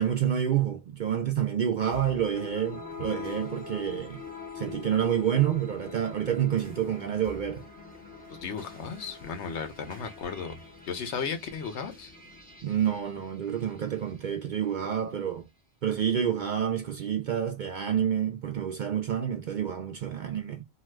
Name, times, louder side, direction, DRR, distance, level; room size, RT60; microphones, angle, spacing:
voice 1, 0.0-4.2 4.6-7.6 12.6-15.4 15.8-20.6, right 9 dB, 60° right, 0.5 m, -28 dB
sound 1, 1.9-14.2, left 4 dB, 10° left, 1.1 m, -44 dB
voice 2, 8.3-10.6 10.9-12.1, left 6 dB, 75° left, 1.0 m, -35 dB
2.7 x 2.3 x 3.2 m
omnidirectional pair, 1.2 m